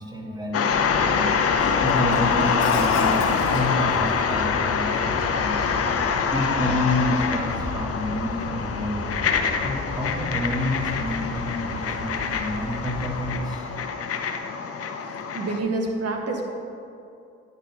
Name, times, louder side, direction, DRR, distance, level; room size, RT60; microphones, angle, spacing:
voice 1, 0.0-1.4 1.8-5.7 6.1-9.1 9.6-13.7, left 1 dB, 15° right, -1 dB, 1.8 m, -29 dB
sound 1, 0.5-15.6, left 6 dB, 50° left, 0.8 m, -25 dB
sound 2, 0.7-13.4, left 2 dB, 35° left, 1.9 m, -36 dB
Shatter, 1.6-4.4 4.9-8.0, left 5 dB, 70° left, 1.3 m, -44 dB
voice 2, 15.1-16.4, right 2 dB, 55° right, 1 dB, 1.4 m, -28 dB
10.0 x 4.0 x 6.0 m, 2.6 s
supercardioid pair, 50°, 29 cm